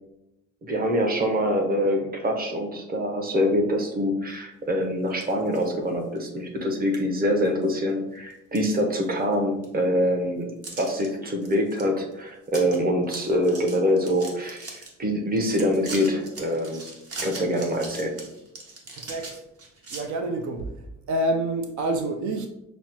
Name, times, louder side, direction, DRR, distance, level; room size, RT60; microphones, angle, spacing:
voice 1, 0.7-10.5 10.8-16.8 17.2-18.2, equal, 30° right, 0.8 m, -25 dB
sound 1, 5.1-5.7 6.1-6.2 6.9-7.0 7.4-7.9 8.3-9.3 9.6-9.7 10.6-11.1 11.4-11.8 12.1-12.2 12.5-12.8 13.0-14.9 15.4-20.0, right 3 dB, 55° right, 1.1 m, -40 dB
voice 2, 18.9-19.4 19.9-22.5, right 1 dB, 80° right, 0.5 m, -28 dB
6.0 x 2.0 x 2.8 m
cardioid pair, 95°, 29 cm